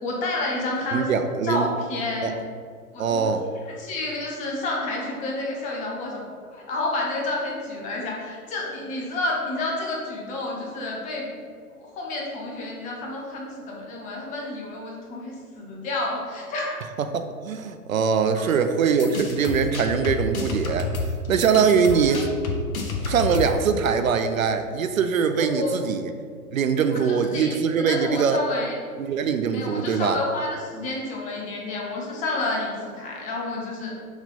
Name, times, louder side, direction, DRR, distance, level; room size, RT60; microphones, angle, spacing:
voice 1, 0.0-1.1 1.4-2.4 2.9-3.3 3.7-6.2 6.5-11.3 11.8-16.8 18.3-18.5 21.9-22.2 25.4-25.8 26.9-28.8 29.5-33.9, left 2 dB, 15° left, -1 dB, 0.8 m, -30 dB
voice 2, 0.9-1.7 2.2-2.4 3.0-3.4 17.0-20.9 21.3-22.3 23.0-26.1 26.5-28.4 29.0-30.2, right 6 dB, 65° right, 8 dB, 0.6 m, -22 dB
sound 1, 18.8-23.7, left 3 dB, 65° left, 1.1 m, -29 dB
6.3 x 3.3 x 5.2 m, 2.1 s
figure-of-eight pair, 120°, 45 cm